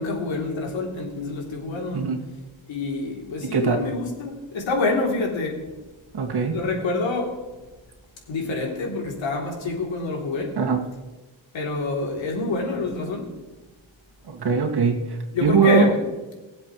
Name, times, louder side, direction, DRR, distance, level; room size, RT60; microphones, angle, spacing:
voice 1, 0.0-2.1 2.7-5.6 6.5-7.4 8.3-10.6 11.5-13.3 15.3-16.0, left 3 dB, 70° left, 0 dB, 3.3 m, -27 dB
voice 2, 3.5-3.9 6.1-6.6 10.6-10.8 14.3-15.9, right 5 dB, 55° right, 2 dB, 2.2 m, -21 dB
22.0 x 7.7 x 3.2 m, 1.2 s
cardioid pair, 110°, 46 cm